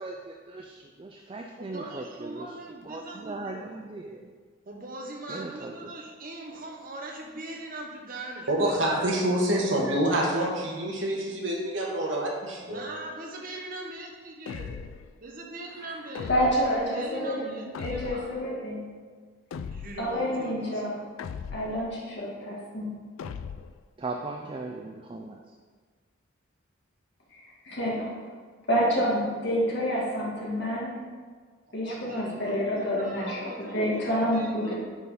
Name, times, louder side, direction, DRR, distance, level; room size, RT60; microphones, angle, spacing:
voice 1, 0.0-2.6 2.8-4.3 5.3-5.9 24.0-25.5, right 3 dB, 25° right, 3 dB, 0.3 m, -38 dB
voice 2, 1.6-3.7 4.7-9.8 12.6-14.8 15.2-16.3 16.9-18.3 19.7-21.0 31.7-34.7, right 2 dB, 45° right, 0 dB, 1.0 m, -41 dB
voice 3, 8.5-12.9, right 1 dB, 70° right, -2 dB, 1.4 m, -27 dB
sound 1, 14.5-15.1 16.1-16.8 17.7-18.4 19.5-20.1 21.2-21.9 23.2-23.8, left 6 dB, 85° left, 0.3 m, -38 dB
voice 4, 16.3-18.9 20.0-21.0 21.5-22.9 27.3-28.2 28.7-30.9 31.7-34.7, equal, 60° left, -4 dB, 1.9 m, -28 dB
9.3 x 3.9 x 4.1 m, 1.5 s
head